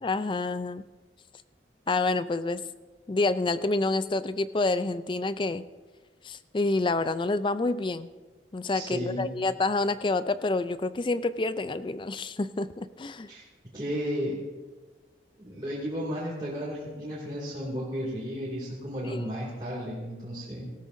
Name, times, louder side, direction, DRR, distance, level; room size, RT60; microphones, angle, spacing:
voice 1, 0.0-0.8 1.9-2.6 3.1-5.6 6.2-8.1 8.5-13.3 19.0-19.3, left 3 dB, 25° left, 14 dB, 0.4 m, -28 dB
voice 2, 8.7-9.3 13.3-13.4 13.7-14.4 15.3-20.7, equal, 25° right, -8 dB, 2.5 m, -33 dB
18.0 x 13.5 x 2.7 m, 1.3 s
head